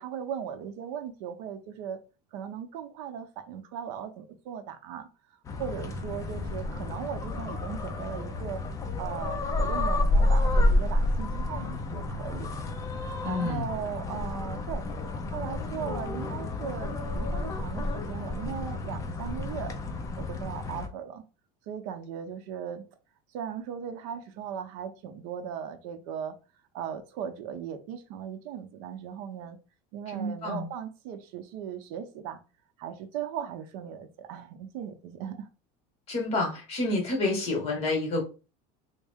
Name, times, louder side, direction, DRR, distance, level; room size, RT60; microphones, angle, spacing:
voice 1, 0.0-2.0 2.3-5.1 5.6-8.6 9.0-12.5 13.2-14.8 15.3-19.8 20.2-21.2 21.7-22.8 23.3-26.4 26.7-29.6 29.9-32.4 32.8-35.5, right 8 dB, 70° right, 8 dB, 0.7 m, -38 dB
sound 1, 5.5-20.9, left 2 dB, 20° left, 0.4 m, -30 dB
voice 2, 13.2-13.7 30.1-30.7 36.1-38.2, left 2 dB, 35° left, 1 dB, 1.4 m, -29 dB
3.5 x 2.1 x 3.5 m, 0.33 s
cardioid pair, 155°, 18 cm